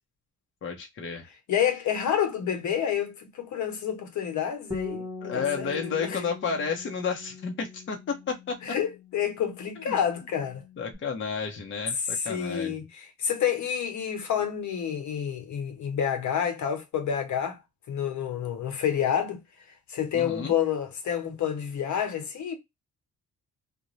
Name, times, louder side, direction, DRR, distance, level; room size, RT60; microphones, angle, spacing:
voice 1, 0.6-1.3 5.2-8.5 9.8-10.0 10.8-12.7 20.1-20.5, left 5 dB, 40° left, 0.7 m, -31 dB
voice 2, 1.5-5.7 6.0-6.2 8.6-10.6 12.2-17.6 17.9-19.4 19.9-22.6, left 8 dB, 70° left, 1.0 m, -29 dB
Bass guitar, 4.7-11.0, left 2 dB, 5° right, 0.9 m, -42 dB
2.7 x 2.1 x 3.0 m
cardioid pair, 90°, 30 cm